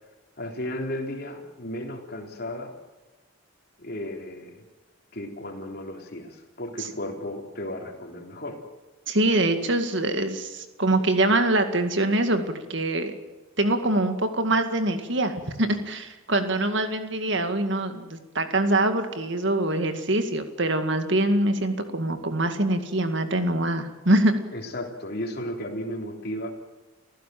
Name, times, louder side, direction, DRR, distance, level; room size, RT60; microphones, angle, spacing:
voice 1, 0.4-2.7 3.8-4.6 5.1-8.6 24.5-26.5, left 1 dB, 45° left, 3 dB, 3.5 m, -34 dB
voice 2, 9.1-13.1 13.6-24.3, right 1 dB, 55° right, 7 dB, 2.2 m, -24 dB
29.0 x 15.5 x 7.7 m, 1.2 s
head